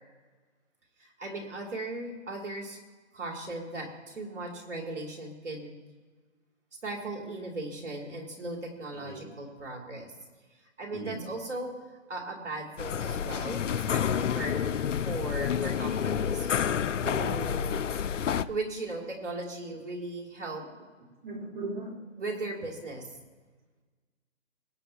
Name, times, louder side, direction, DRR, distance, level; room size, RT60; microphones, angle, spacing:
voice 1, 1.0-2.8 3.1-5.7 6.8-10.1 10.8-11.7 12.1-14.6 15.0-16.5 17.0-17.8 18.5-20.6 22.2-23.0, right 2 dB, 75° right, 0 dB, 3.3 m, -37 dB
voice 2, 8.9-9.3 10.9-11.2 17.5-17.9 21.2-21.9, right 2 dB, 55° right, -1 dB, 4.0 m, -39 dB
sound 1, 12.8-18.4, left 8 dB, 85° left, 0.6 m, -29 dB
22.5 x 9.0 x 2.9 m, 1.4 s
hypercardioid pair, 145°, 36 cm